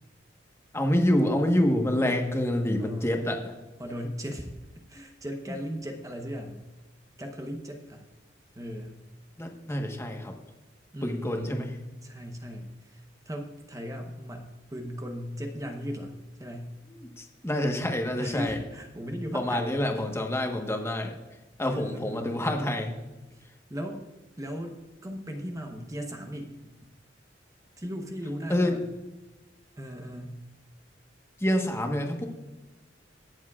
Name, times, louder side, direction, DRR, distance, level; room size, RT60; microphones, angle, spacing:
voice 1, 0.7-3.5 9.4-10.3 11.0-11.7 17.0-18.6 19.3-21.1 21.6-22.9 28.5-28.7 31.4-32.3, left 1 dB, 15° left, 3 dB, 1.2 m, -27 dB
voice 2, 2.8-3.2 3.8-4.5 4.9-6.6 7.2-8.0 8.6-8.9 10.9-16.1 16.4-16.7 18.2-20.1 21.7-22.4 23.7-24.0 24.4-26.5 27.8-28.8 29.8-30.4, equal, 20° right, 4 dB, 0.9 m, -37 dB
20.5 x 7.3 x 2.4 m, 1.1 s
head